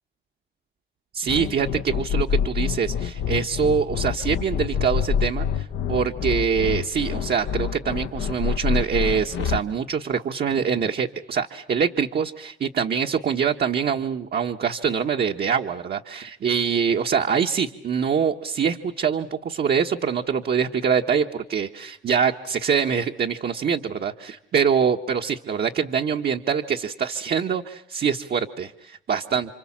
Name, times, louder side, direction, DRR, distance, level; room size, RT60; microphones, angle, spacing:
voice 1, 1.1-29.5, right 7 dB, 55° right, 4 dB, 1.3 m, -24 dB
sound 1, 1.3-9.6, left 8 dB, 80° left, 1.0 m, -26 dB
30.0 x 26.0 x 7.4 m, 0.71 s
cardioid pair, 90°, 20 cm